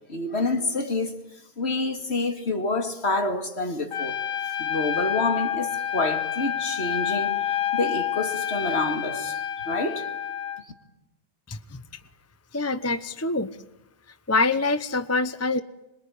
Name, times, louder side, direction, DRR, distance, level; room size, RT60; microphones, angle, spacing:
voice 1, 0.1-1.2 1.6-4.2 4.6-7.5 7.7-10.1, left 2 dB, 40° left, 2.5 m, -28 dB
Trumpet, 3.9-10.6, left 9 dB, 55° left, 1.7 m, -28 dB
voice 2, 11.5-12.0 12.5-13.6 14.3-15.6, left 3 dB, 15° left, 0.5 m, -25 dB
26.5 x 21.5 x 10.0 m
omnidirectional pair, 1.8 m